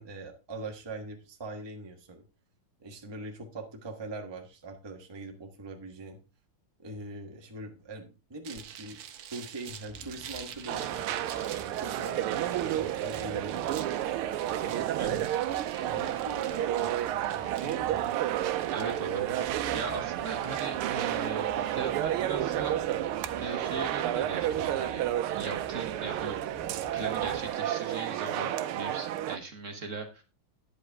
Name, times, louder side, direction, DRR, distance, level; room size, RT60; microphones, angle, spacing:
voice 1, 0.0-2.2 2.8-6.2 6.8-9.0 9.3-11.0 11.6-13.6 14.6-14.8 15.8-16.9 17.3-18.0, right 2 dB, 15° right, 3 dB, 1.0 m, -42 dB
sound 1, 8.4-22.4, right 9 dB, 65° right, 1.4 m, -48 dB
sound 2, 9.9-27.5, left 1 dB, 10° left, 1.3 m, -50 dB
sound 3, 10.7-29.4, right 12 dB, 80° right, 1.5 m, -31 dB
voice 2, 14.6-15.4 18.7-22.8 23.4-26.4 26.9-30.2, right 3 dB, 40° right, 5 dB, 1.3 m, -39 dB
9.9 x 8.0 x 3.5 m, 0.30 s
omnidirectional pair, 2.4 m